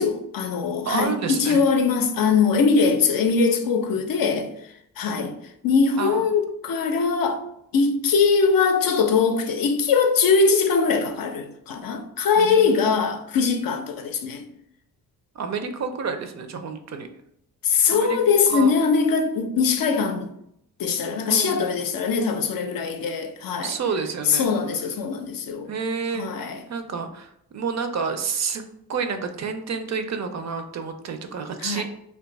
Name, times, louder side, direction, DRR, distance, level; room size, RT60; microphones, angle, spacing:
voice 1, 0.0-4.5 5.0-5.3 5.6-7.4 7.7-14.4 17.6-20.3 20.8-23.8 24.3-25.7 26.1-26.6 31.6-31.8, left 5 dB, 60° left, 0.5 m, -21 dB
voice 2, 0.9-1.6 5.1-5.3 6.0-6.2 12.4-12.8 15.4-17.1 17.9-18.2 18.5-18.7 21.3-21.9 23.6-24.5 25.7-28.6 28.9-31.8, right 5 dB, 45° right, 0.4 m, -29 dB
2.5 x 2.3 x 3.9 m
cardioid pair, 110°, 38 cm